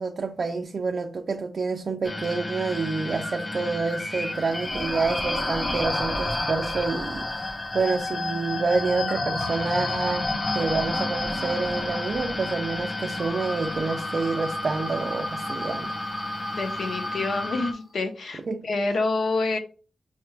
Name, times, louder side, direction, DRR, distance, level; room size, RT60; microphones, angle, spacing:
voice 1, 0.0-10.3 10.5-15.9 18.5-18.6, right 4 dB, 50° right, 0.4 m, -28 dB
sound 1, 2.0-17.7, left 2 dB, 25° left, 0.5 m, -33 dB
sound 2, 4.3-17.7, left 1 dB, 45° left, 1.2 m, -32 dB
voice 2, 16.5-19.6, left 3 dB, 70° left, 0.7 m, -27 dB
5.7 x 2.2 x 3.2 m
wide cardioid pair, 110°, 0 cm